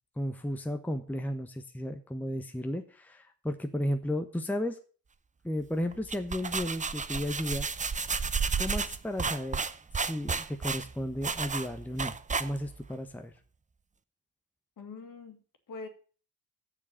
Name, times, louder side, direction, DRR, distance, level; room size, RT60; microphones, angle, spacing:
voice 1, 0.2-4.8 5.4-7.7 8.6-9.6 10.0-13.3, left 1 dB, 5° left, 1.0 m, -34 dB
sound 1, 5.9-12.9, right 5 dB, 15° right, 0.7 m, -32 dB
voice 2, 14.8-15.9, left 4 dB, 45° left, 2.2 m, -44 dB
7.5 x 7.0 x 8.0 m
hypercardioid pair, 45°, 45 cm